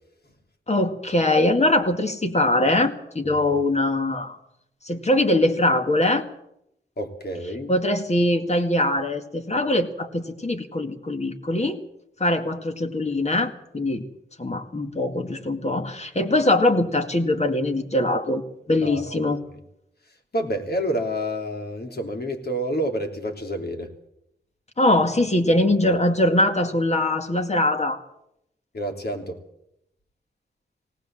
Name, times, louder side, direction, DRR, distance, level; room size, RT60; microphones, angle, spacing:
voice 1, 0.7-4.4 4.8-6.2 7.7-11.8 12.2-14.0 14.4-18.4 18.7-19.4 24.8-28.0, left 1 dB, 35° left, 6 dB, 2.2 m, -22 dB
voice 2, 7.0-7.7 18.8-19.2 20.3-23.9 28.7-29.4, equal, 55° left, 4 dB, 3.2 m, -28 dB
19.0 x 18.5 x 7.6 m, 0.78 s
wide cardioid pair, 95°, 19 cm